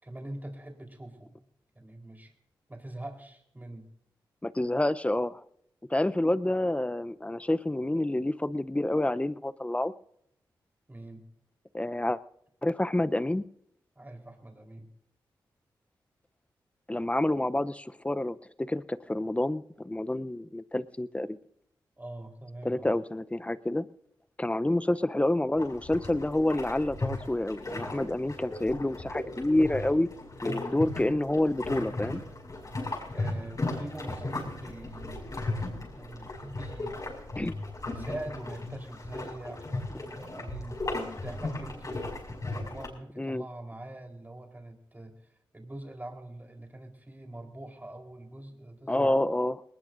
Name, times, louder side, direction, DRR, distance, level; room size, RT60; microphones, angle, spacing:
voice 1, 0.0-1.4 1.8-2.3 2.7-3.9 10.9-11.2 14.0-14.9 22.0-22.9 33.1-35.4 35.9-37.0 37.9-40.8 41.2-42.0 42.5-49.1, right 1 dB, 20° right, 3 dB, 4.0 m, -43 dB
voice 2, 4.4-5.4 5.9-9.9 11.7-12.2 12.6-13.5 16.9-21.4 22.6-23.9 24.4-30.1 30.4-32.2 37.4-37.6 40.0-40.1 43.2-43.4 48.9-49.6, left 1 dB, 15° left, 14 dB, 0.7 m, -28 dB
sound 1, 25.6-42.9, left 2 dB, 45° left, 6.2 m, -36 dB
20.5 x 19.5 x 2.6 m, 0.73 s
cardioid pair, 50°, 8 cm